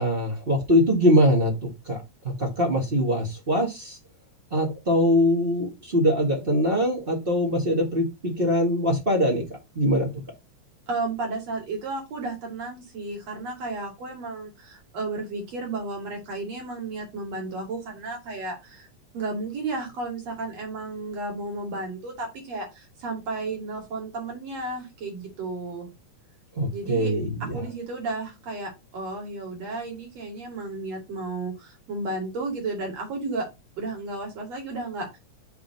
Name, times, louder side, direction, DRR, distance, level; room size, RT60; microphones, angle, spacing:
voice 1, 0.0-4.0 4.5-9.4 9.7-10.1 26.5-27.6, equal, 25° right, 1 dB, 1.5 m, -23 dB
voice 2, 10.9-18.9 19.1-25.9 26.7-27.1 27.4-33.5 33.8-35.1, right 3 dB, 60° right, 0 dB, 3.7 m, -33 dB
6.1 x 3.9 x 5.3 m, 0.24 s
omnidirectional pair, 3.3 m